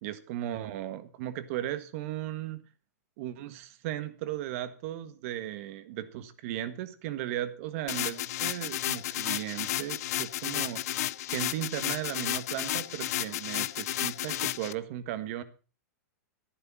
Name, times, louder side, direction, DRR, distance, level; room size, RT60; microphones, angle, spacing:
voice 1, 0.0-2.6 3.2-10.8 11.3-15.4, right 13 dB, 50° right, 11 dB, 1.6 m, -36 dB
sound 1, 7.9-14.7, left 14 dB, 60° left, 0.6 m, -32 dB
13.0 x 11.5 x 5.6 m, 0.35 s
hypercardioid pair, 145°, 9 cm